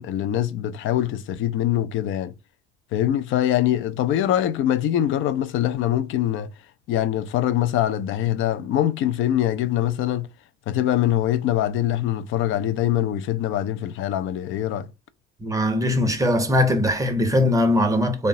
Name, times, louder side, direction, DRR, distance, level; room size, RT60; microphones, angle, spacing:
voice 1, 0.0-2.3 2.9-6.5 6.9-10.3 10.7-14.9, left 12 dB, 35° left, 0.4 m, -23 dB
voice 2, 15.4-18.3, left 1 dB, 10° right, 0.7 m, -20 dB
3.5 x 2.1 x 2.7 m
figure-of-eight pair, 55°, 35 cm